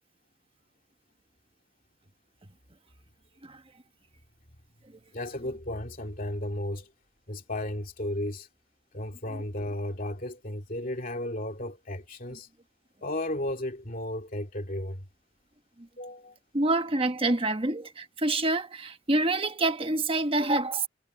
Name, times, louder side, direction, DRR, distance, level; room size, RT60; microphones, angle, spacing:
voice 1, 5.1-6.9 7.3-8.5 8.9-12.5 13.0-15.0 16.0-16.3, left 1 dB, 45° left, 2.6 m, -34 dB
voice 2, 16.5-20.9, right 2 dB, 30° right, 1.4 m, -27 dB
head